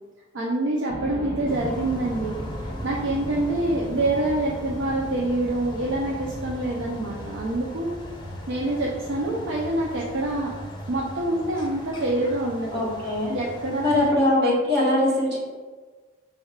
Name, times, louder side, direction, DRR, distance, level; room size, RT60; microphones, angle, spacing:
voice 1, 0.3-2.4 2.8-7.9 8.5-10.5 10.9-12.8 13.3-14.4, right 2 dB, 70° right, -3 dB, 0.5 m, -26 dB
sound 1, 0.9-12.5, equal, 10° right, 1.2 m, -40 dB
sound 2, 1.5-14.1, equal, 20° left, 0.5 m, -39 dB
voice 2, 12.7-13.4 13.8-15.4, left 1 dB, 55° right, -6 dB, 1.4 m, -21 dB
5.4 x 3.4 x 2.3 m, 1.4 s
head